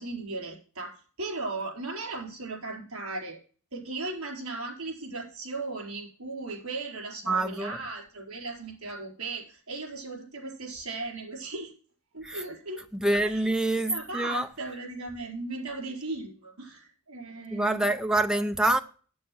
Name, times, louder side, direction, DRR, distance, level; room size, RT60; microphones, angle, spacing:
voice 1, 0.0-3.4 3.7-11.7 12.1-12.9 13.2-13.5 13.9-17.9, right 3 dB, 75° right, 4.5 m, -37 dB
voice 2, 7.3-7.8 12.2-12.4 12.9-14.5 17.5-18.8, right 2 dB, 5° right, 0.5 m, -26 dB
8.7 x 8.1 x 6.0 m
head